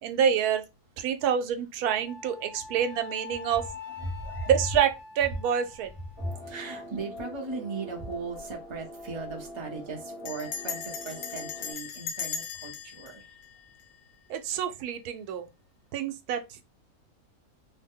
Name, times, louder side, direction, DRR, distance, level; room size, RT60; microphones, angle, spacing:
voice 1, 0.0-0.6 1.0-3.7 4.5-5.9 14.3-15.5 15.9-16.6, right 8 dB, 85° right, 1.1 m, -27 dB
Wind instrument woodwind instrument, 2.0-6.4, left 6 dB, 55° left, 1.1 m, -44 dB
voice 2, 4.0-4.5 6.2-13.2, right 3 dB, 25° right, 0.6 m, -37 dB
sound 1, 6.2-11.7, left 1 dB, 55° right, 0.9 m, -43 dB
Bell, 8.1-8.5 8.8-8.9 9.1-9.5 10.3-14.3, left 7 dB, 80° left, 1.1 m, -38 dB
3.1 x 2.1 x 3.6 m
omnidirectional pair, 1.6 m